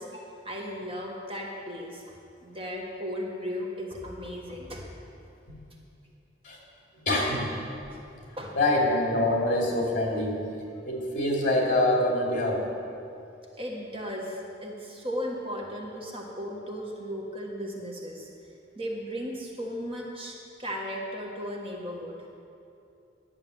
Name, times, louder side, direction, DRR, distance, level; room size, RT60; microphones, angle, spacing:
voice 1, 0.0-2.2 2.4-4.8 7.9-8.0 8.4-8.6 13.5-18.3 18.7-22.2, equal, 30° right, -1 dB, 1.4 m, -36 dB
voice 2, 6.9-7.5 8.5-10.4 10.8-12.6, left 1 dB, 45° left, -2 dB, 2.6 m, -25 dB
11.0 x 6.8 x 7.8 m, 2.7 s
head